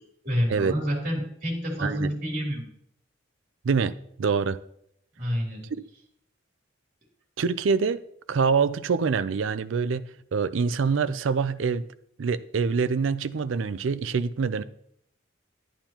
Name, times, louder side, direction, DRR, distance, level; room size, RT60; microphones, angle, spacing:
voice 1, 0.2-2.7 5.2-5.7, equal, 45° right, 3.0 m, -28 dB
voice 2, 4.2-4.6 7.4-8.0 8.3-11.9 12.2-14.6, right 5 dB, 80° right, 0.4 m, -25 dB
11.5 x 8.9 x 2.9 m
head